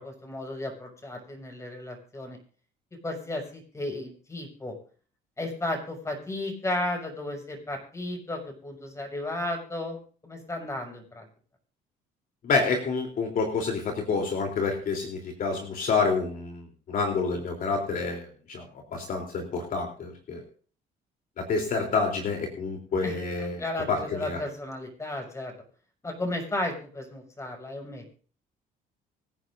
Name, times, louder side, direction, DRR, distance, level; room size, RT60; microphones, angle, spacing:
voice 1, 0.0-2.4 3.0-4.7 5.4-10.0 10.2-11.3 23.0-25.5 26.0-28.1, left 1 dB, 15° left, 3 dB, 5.9 m, -34 dB
voice 2, 12.4-18.6 18.9-20.4 21.4-24.4, left 4 dB, 55° left, 2 dB, 3.4 m, -28 dB
25.0 x 10.0 x 2.6 m, 0.42 s
cardioid pair, 110°, 17 cm